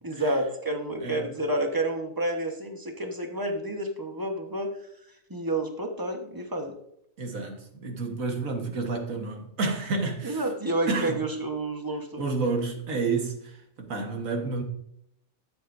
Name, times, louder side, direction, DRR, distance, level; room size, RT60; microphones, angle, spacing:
voice 1, 0.0-4.7 5.3-6.7 10.2-12.2, right 1 dB, 15° right, 1.1 m, -29 dB
voice 2, 7.2-10.5 10.9-11.2 12.2-14.6, right 3 dB, 65° right, 1.8 m, -30 dB
13.0 x 7.6 x 2.7 m
omnidirectional pair, 1.6 m